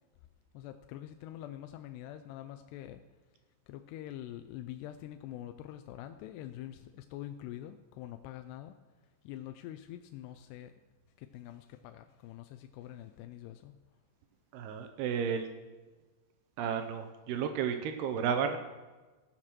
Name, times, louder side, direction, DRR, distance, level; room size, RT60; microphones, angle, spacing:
voice 1, 0.5-3.0 3.7-8.8 9.2-10.7 11.2-13.8, left 12 dB, 85° left, 7 dB, 2.4 m, -45 dB
voice 2, 14.5-15.5 16.6-18.6, right 7 dB, 80° right, 7 dB, 2.4 m, -32 dB
17.0 x 5.9 x 6.1 m, 1.3 s
omnidirectional pair, 5.2 m